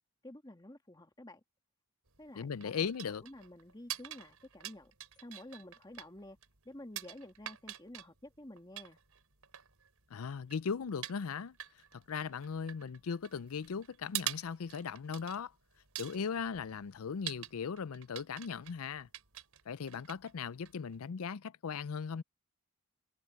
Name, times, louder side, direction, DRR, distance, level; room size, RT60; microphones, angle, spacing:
voice 1, 0.2-1.4 2.2-6.4 6.7-9.0, left 1 dB, 20° left, 1.8 m, -51 dB
sound 1, 2.1-21.1, right 13 dB, 80° right, 5.0 m, -47 dB
voice 2, 2.4-3.2 10.1-11.6 11.9-15.5 16.0-19.1 19.7-22.2, left 6 dB, 75° left, 0.5 m, -38 dB
head